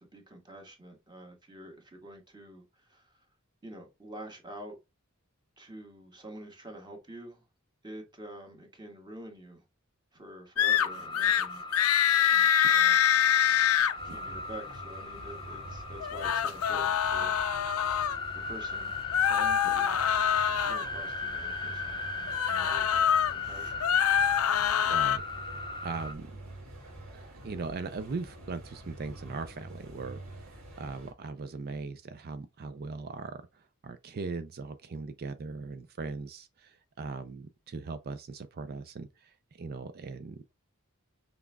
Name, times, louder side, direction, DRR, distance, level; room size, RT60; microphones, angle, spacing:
voice 1, 0.1-3.2 3.6-4.8 5.6-7.5 7.8-9.6 10.1-11.7 12.3-13.0 14.0-18.1 18.4-18.9 19.2-20.0 20.6-23.8, right 1 dB, 20° right, 1.5 m, -47 dB
sound 1, 10.6-10.9 11.1-11.5 11.7-13.9 16.0-18.2 19.1-20.9 22.3-23.3 23.7-25.2, left 9 dB, 90° left, 0.5 m, -25 dB
sound 2, 10.7-26.2, left 3 dB, 20° left, 0.6 m, -38 dB
sound 3, 13.9-31.1, right 1 dB, 80° right, 2.1 m, -47 dB
voice 2, 24.9-25.2 25.8-26.3 27.1-40.6, right 4 dB, 45° right, 0.4 m, -39 dB
6.0 x 3.5 x 2.2 m
head